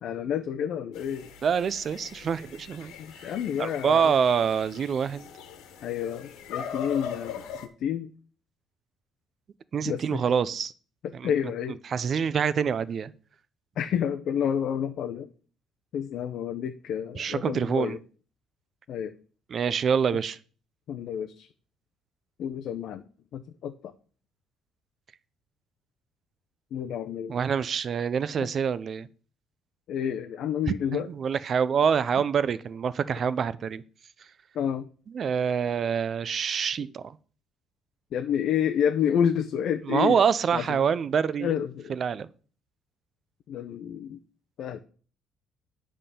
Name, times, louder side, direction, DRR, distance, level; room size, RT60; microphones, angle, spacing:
voice 1, 0.0-1.3 3.0-4.1 5.8-8.1 9.8-10.2 11.2-11.8 13.8-15.3 15.9-18.0 18.9-19.1 20.9-21.5 22.4-23.0 23.3-23.9 26.7-27.3 28.4-28.5 29.9-31.1 34.5-34.9 38.1-40.2 40.5-40.9 41.4-42.0 43.5-44.2 44.6-44.8, left 8 dB, 60° left, 6 dB, 0.6 m, -29 dB
sound 1, 0.9-7.7, left 7 dB, 85° left, 1.3 m, -41 dB
voice 2, 1.4-3.3 3.6-5.3 9.7-10.7 11.1-11.3 11.8-13.1 17.2-18.0 19.5-20.4 27.3-29.1 30.7-33.8 35.1-37.2 39.9-41.5 41.9-42.3, right 7 dB, 40° right, 17 dB, 0.5 m, -26 dB
9.9 x 3.7 x 6.8 m, 0.40 s
cardioid pair, 140°, 0 cm